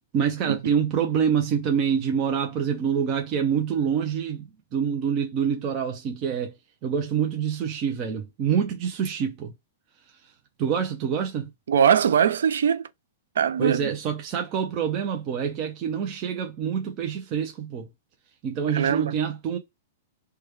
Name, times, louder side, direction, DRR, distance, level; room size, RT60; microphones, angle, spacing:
voice 1, 0.1-6.5 6.8-9.5 10.2-10.3 10.6-11.5 13.6-17.9 18.4-19.6, right 7 dB, 25° right, 0.5 m, -26 dB
voice 2, 11.7-12.8 13.4-13.8 18.7-19.1, right 8 dB, 85° right, 0.4 m, -21 dB
3.2 x 2.2 x 3.3 m
supercardioid pair, 165°, 0 cm